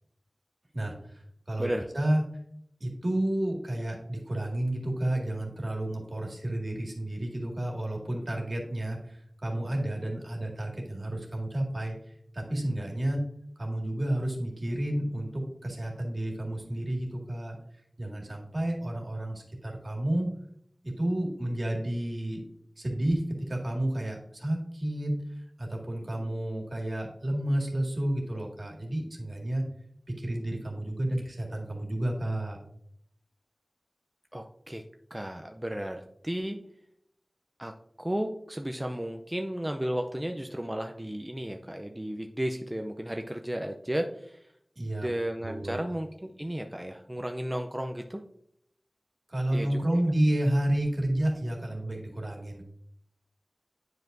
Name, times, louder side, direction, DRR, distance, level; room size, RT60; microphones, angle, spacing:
voice 1, 0.7-2.2 2.8-13.2 13.6-20.3 20.8-22.4 22.8-29.6 30.2-32.6 44.8-45.1 45.4-45.8 49.3-52.6, right 1 dB, 60° right, 0 dB, 1.9 m, -31 dB
voice 2, 34.3-34.8 35.1-36.6 37.6-37.7 38.0-44.4 45.0-48.2 49.5-50.0, right 1 dB, 15° right, 4 dB, 0.5 m, -34 dB
9.4 x 5.1 x 2.6 m, 0.72 s
wide cardioid pair, 50°, 0 cm